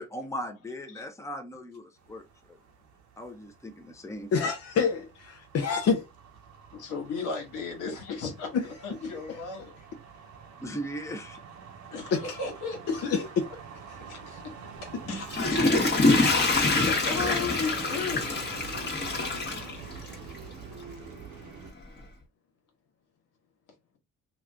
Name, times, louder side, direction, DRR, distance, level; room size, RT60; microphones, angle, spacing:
voice 1, 0.0-2.6 3.2-4.5 10.6-11.4, equal, 10° left, 0.7 m, -38 dB
sound 1, 2.0-21.7, right 6 dB, 75° right, 0.9 m, -46 dB
voice 2, 4.3-6.1 9.0-9.7 12.1-12.4 12.9-13.2 16.9-17.0, left 5 dB, 55° left, 0.7 m, -28 dB
voice 3, 6.7-9.9 11.9-13.3 13.9-14.5 14.8-15.7 16.2-18.2, left 4 dB, 85° left, 1.4 m, -36 dB
Water / Toilet flush, 15.1-20.4 20.8-20.9, left 2 dB, 35° left, 1.2 m, -25 dB
3.0 x 2.5 x 3.5 m
cardioid pair, 90°, 30 cm